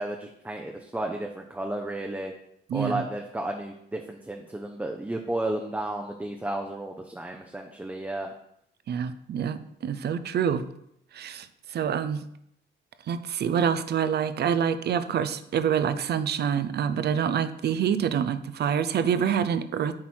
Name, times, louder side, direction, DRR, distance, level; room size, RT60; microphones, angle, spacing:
voice 1, 0.0-2.3 2.7-8.3, right 1 dB, 10° right, 2 dB, 0.7 m, -33 dB
voice 2, 2.7-3.0 8.9-10.6 11.1-12.2 13.1-20.0, right 8 dB, 55° right, 12 dB, 0.6 m, -26 dB
7.5 x 4.5 x 4.4 m, 0.75 s
cardioid pair, 90°, 20 cm